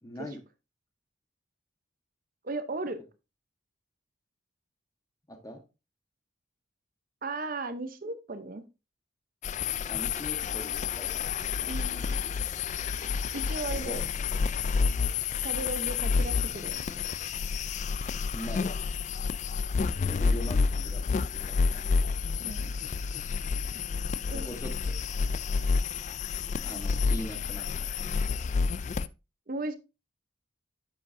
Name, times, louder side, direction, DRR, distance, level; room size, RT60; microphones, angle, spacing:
voice 1, 0.0-0.4 5.3-5.6 9.8-11.3 11.6-11.7 13.8-14.0 18.3-18.7 20.0-21.8 24.3-24.7 26.6-28.4, equal, 20° left, 5 dB, 1.3 m, -42 dB
voice 2, 2.4-3.0 7.2-8.6 11.7-12.2 13.3-14.0 15.4-17.0 22.4-22.7 24.3-24.5 29.5-29.7, right 2 dB, 45° right, 10 dB, 0.8 m, -36 dB
sound 1, 9.4-29.1, left 5 dB, 40° left, 0.3 m, -29 dB
8.4 x 7.0 x 2.6 m, 0.27 s
head